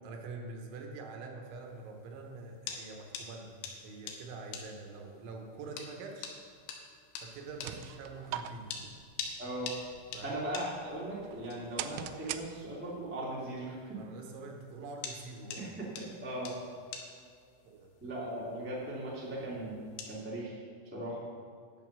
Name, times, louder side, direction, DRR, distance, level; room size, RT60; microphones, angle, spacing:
voice 1, 0.0-3.6 3.8-6.4 7.2-8.9 10.1-10.4 13.9-15.6 17.6-17.9, right 3 dB, 75° right, 2 dB, 3.2 m, -45 dB
sound 1, 1.5-20.2, left 6 dB, 75° left, 3.3 m, -48 dB
sound 2, 7.3-13.0, right 11 dB, 90° right, 3.3 m, -44 dB
voice 2, 9.4-9.7 10.2-14.0 15.5-16.5 18.0-19.8 20.0-20.6 20.9-21.2, right 1 dB, 10° right, -7 dB, 0.6 m, -38 dB
10.5 x 8.3 x 6.2 m, 2.3 s
omnidirectional pair, 6.0 m